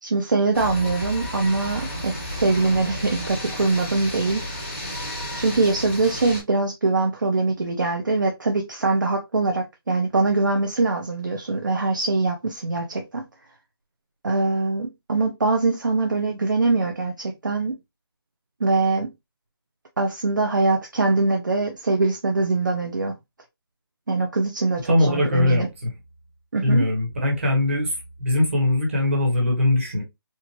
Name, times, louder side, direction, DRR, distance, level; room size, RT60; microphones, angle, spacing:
voice 1, 0.0-4.4 5.4-13.2 14.2-17.8 18.6-19.1 20.0-23.1 24.1-25.7 26.5-26.9, right 3 dB, 50° right, 0.6 m, -23 dB
sound 1, 0.5-6.4, equal, 25° left, 1.7 m, -32 dB
voice 2, 24.9-25.9 26.6-30.0, left 1 dB, 30° right, 1.4 m, -21 dB
4.4 x 2.4 x 2.8 m
figure-of-eight pair, 175°, 13 cm